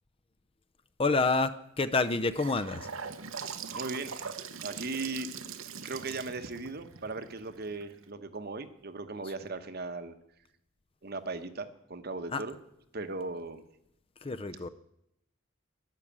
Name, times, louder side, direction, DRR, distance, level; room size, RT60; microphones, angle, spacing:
voice 1, 1.0-2.9 12.3-12.4 14.2-14.7, left 3 dB, 25° left, 12 dB, 0.5 m, -28 dB
Gurgling / Sink (filling or washing) / Bathtub (filling or washing), 2.0-8.0, right 6 dB, 80° right, 1.1 m, -42 dB
voice 2, 3.7-4.3 4.6-5.3 5.8-10.2 11.0-12.6 12.9-13.6, right 3 dB, 50° right, 9 dB, 1.1 m, -38 dB
12.0 x 11.0 x 8.7 m, 0.79 s
head